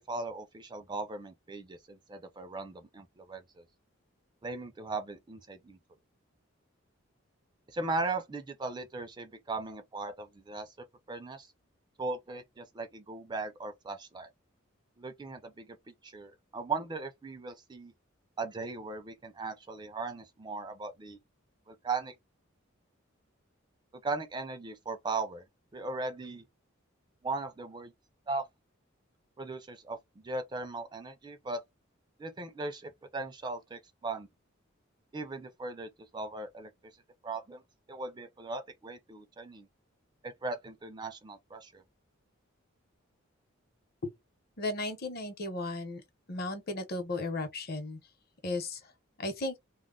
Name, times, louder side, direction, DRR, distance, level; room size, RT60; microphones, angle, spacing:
voice 1, 0.0-3.6 4.4-5.8 7.7-10.7 11.1-11.5 12.0-14.3 15.0-15.7 16.0-17.9 18.4-21.2 21.7-22.1 24.0-25.4 25.7-26.4 27.2-27.9 28.3-28.5 29.4-31.6 32.2-34.3 35.1-36.7 37.2-37.6 37.9-39.7 40.2-41.8, right 3 dB, 20° right, 0.4 m, -38 dB
voice 2, 44.6-46.0 46.3-48.0 48.4-48.8 49.2-49.6, left 2 dB, 50° left, 0.8 m, -35 dB
2.2 x 2.1 x 3.6 m
head